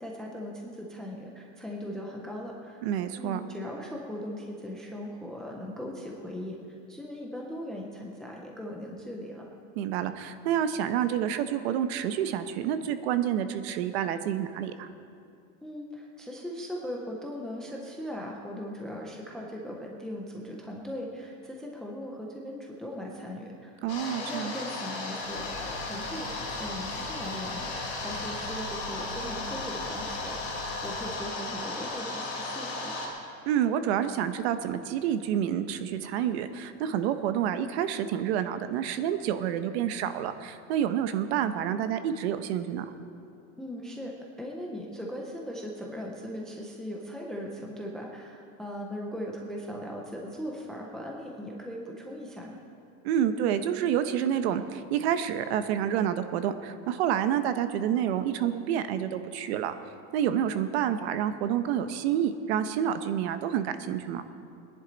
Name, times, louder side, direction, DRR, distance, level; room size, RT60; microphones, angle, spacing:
voice 1, 0.0-2.8 3.2-6.6 6.9-9.4 15.6-23.8 24.2-33.1 43.6-44.1 44.4-52.6, equal, ahead, -1 dB, 0.4 m, -39 dB
voice 2, 2.8-3.4 9.8-14.9 23.8-24.5 33.5-42.9 53.0-59.7 60.1-64.2, right 9 dB, 60° right, 10 dB, 0.9 m, -28 dB
sound 1, 23.9-33.1, left 2 dB, 40° left, 3.2 m, -35 dB
sound 2, 25.2-31.1, left 3 dB, 85° left, 2.0 m, -45 dB
20.5 x 10.5 x 3.9 m, 2.5 s
supercardioid pair, 180°, 37 cm